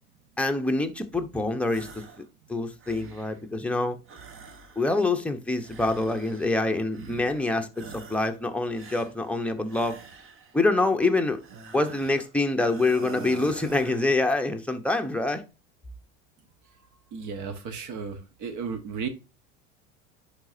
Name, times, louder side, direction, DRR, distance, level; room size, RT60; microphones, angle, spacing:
voice 1, 0.4-2.0 2.5-4.0 4.8-10.0 10.5-11.4 11.7-15.4, left 2 dB, 5° left, 1.0 m, -26 dB
sound 1, 1.7-2.3 2.6-3.5 4.0-5.1 5.6-6.6 6.9-7.5 7.7-8.4 8.7-10.6 11.4-12.3 12.6-14.2, right 4 dB, 35° right, 1.3 m, -46 dB
voice 2, 17.1-19.1, right 5 dB, 50° right, 1.5 m, -34 dB
10.5 x 4.3 x 2.8 m
hypercardioid pair, 85°, 39 cm